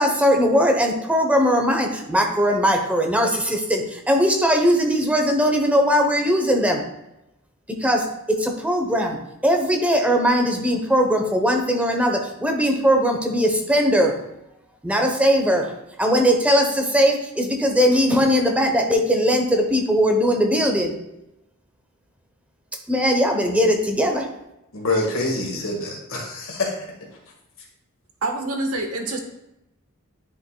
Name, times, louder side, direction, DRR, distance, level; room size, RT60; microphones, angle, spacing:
voice 1, 0.0-6.8 7.8-14.2 14.8-15.7 16.0-21.0 22.9-24.3, equal, 5° right, 2 dB, 0.8 m, -20 dB
voice 2, 24.7-26.8, left 2 dB, 65° left, 0 dB, 1.7 m, -26 dB
voice 3, 28.2-29.2, right 2 dB, 80° right, 4 dB, 1.1 m, -26 dB
9.9 x 5.2 x 2.2 m, 0.90 s
head